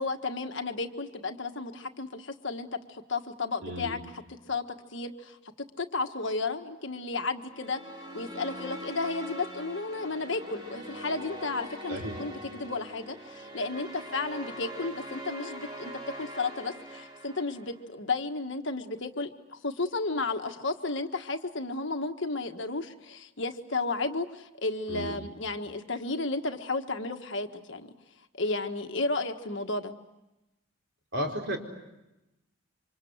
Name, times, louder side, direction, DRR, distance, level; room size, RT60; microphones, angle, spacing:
voice 1, 0.0-4.0 4.5-4.6 4.9-5.4 5.8-7.8 8.1-15.9 16.2-27.9 28.3-29.9, left 3 dB, 55° left, 6 dB, 1.5 m, -33 dB
voice 2, 3.6-4.0 11.9-12.2 24.9-25.2 31.1-31.6, equal, 55° right, 1 dB, 4.5 m, -33 dB
sound 1, 7.4-17.8, equal, 20° right, 3.5 m, -42 dB
28.0 x 25.5 x 8.0 m, 0.96 s
head